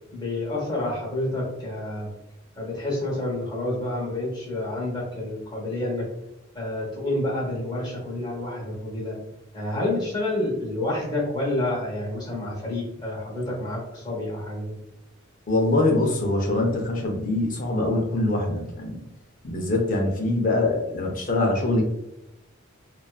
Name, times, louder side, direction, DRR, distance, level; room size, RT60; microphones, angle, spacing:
voice 1, 0.1-2.1 2.6-6.0 6.5-9.2 9.5-14.8, left 1 dB, 20° left, -5 dB, 0.9 m, -29 dB
voice 2, 15.5-19.0 19.4-21.8, left 2 dB, 45° left, 1 dB, 0.5 m, -23 dB
2.5 x 2.3 x 2.2 m, 0.88 s
head